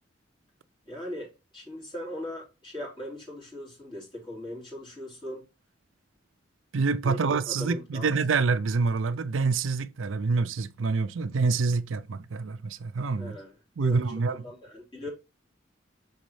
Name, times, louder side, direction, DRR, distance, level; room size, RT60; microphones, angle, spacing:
voice 1, 0.9-5.4 7.0-8.1 13.2-13.5 13.8-14.0 14.3-15.1, left 1 dB, 25° left, 3.6 m, -39 dB
voice 2, 6.7-13.3 13.8-14.4, right 4 dB, 90° right, 0.5 m, -26 dB
6.3 x 5.2 x 3.2 m
head